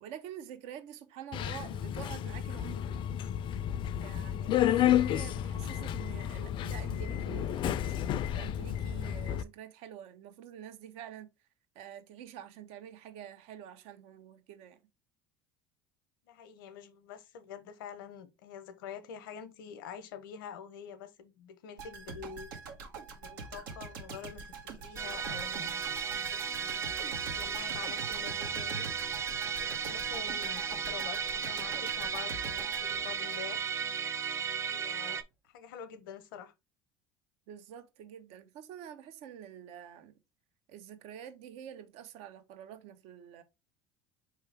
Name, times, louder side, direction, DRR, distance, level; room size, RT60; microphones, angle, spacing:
voice 1, 0.0-3.1 3.9-8.0 8.3-11.3 11.7-14.8 37.5-40.1 40.7-43.4, right 10 dB, 70° right, 0.8 m, -47 dB
Subway metro underground, 1.3-9.4, left 11 dB, 50° left, 0.4 m, -31 dB
voice 2, 16.2-22.5 23.2-26.9 27.2-28.9 29.4-33.6 34.7-36.5, left 8 dB, 85° left, 0.7 m, -47 dB
sound 1, 21.8-33.8 34.1-34.3, right 4 dB, 85° right, 1.1 m, -45 dB
Musical instrument, 25.0-35.2, right 7 dB, 25° right, 0.5 m, -35 dB
4.6 x 3.2 x 3.3 m
supercardioid pair, 85°, 11 cm